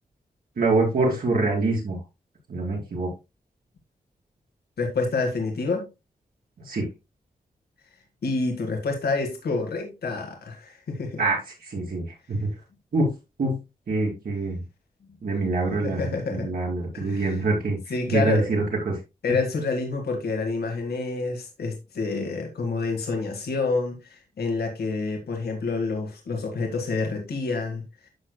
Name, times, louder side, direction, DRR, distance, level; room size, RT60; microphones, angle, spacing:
voice 1, 0.6-2.0 2.5-3.1 6.7-6.9 11.2-12.5 12.9-13.1 13.4-13.6 13.9-14.6 15.2-17.8 18.1-19.0, right 3 dB, 70° right, 4.3 m, -25 dB
voice 2, 4.8-5.9 8.2-11.2 15.8-16.5 16.9-17.3 17.9-18.5 19.2-27.8, left 3 dB, 90° left, 1.8 m, -28 dB
11.5 x 6.7 x 2.2 m
wide cardioid pair, 105°, 16 cm